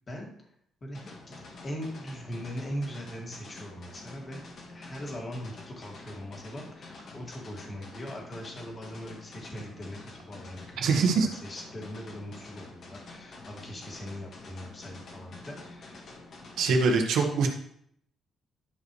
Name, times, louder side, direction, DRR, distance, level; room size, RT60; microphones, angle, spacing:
voice 1, 0.8-4.4 4.7-16.1, equal, 35° left, -1 dB, 2.4 m, -40 dB
sound 1, 0.9-16.9, left 3 dB, 60° left, 1.9 m, -47 dB
voice 2, 10.8-11.3 16.6-17.5, right 4 dB, 80° right, 3 dB, 1.6 m, -23 dB
11.5 x 5.3 x 3.3 m, 0.68 s
cardioid pair, 90°, 0 cm